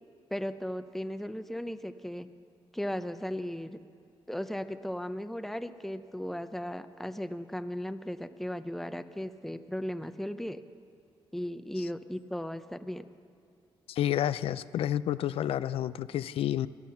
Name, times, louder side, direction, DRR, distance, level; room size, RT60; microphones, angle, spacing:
voice 1, 0.3-2.3 2.7-3.8 4.3-10.6 11.3-13.1, equal, 5° left, 11 dB, 0.7 m, -36 dB
voice 2, 13.9-16.7, left 11 dB, 80° left, 15 dB, 0.4 m, -30 dB
19.0 x 12.5 x 5.8 m, 2.3 s
cardioid pair, 80°, 10 cm